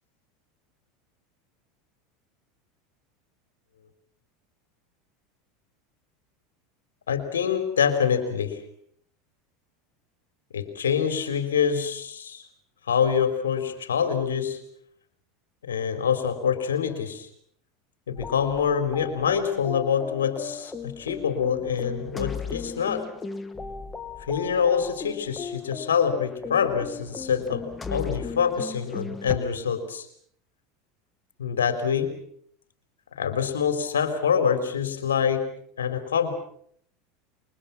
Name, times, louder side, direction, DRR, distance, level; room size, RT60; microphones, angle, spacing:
voice 1, 7.1-8.6 10.5-12.4 12.9-14.6 15.7-17.3 18.1-23.1 24.3-30.1 31.4-32.2 33.2-35.5 35.8-36.3, left 7 dB, 75° left, 8 dB, 4.3 m, -25 dB
sound 1, 18.2-29.4, left 4 dB, 15° left, 2.3 m, -37 dB
29.0 x 24.5 x 6.2 m, 0.65 s
figure-of-eight pair, 80°, 0 cm